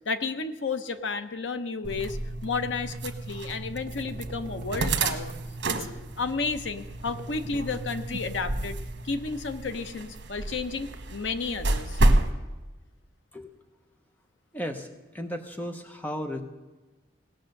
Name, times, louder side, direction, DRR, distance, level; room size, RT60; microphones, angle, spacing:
voice 1, 0.1-5.3 5.7-5.9 6.2-8.8 9.0-12.0, left 4 dB, 85° left, 9 dB, 0.8 m, -32 dB
sound 1, 1.8-12.3, right 2 dB, 80° right, 1.1 m, -30 dB
sound 2, 3.9-5.8 7.1-8.3 10.5-11.5, right 2 dB, 45° right, 1.2 m, -52 dB
voice 2, 14.5-14.9 15.1-16.4, equal, 10° left, 5 dB, 0.8 m, -34 dB
18.0 x 6.6 x 6.5 m, 1.2 s
head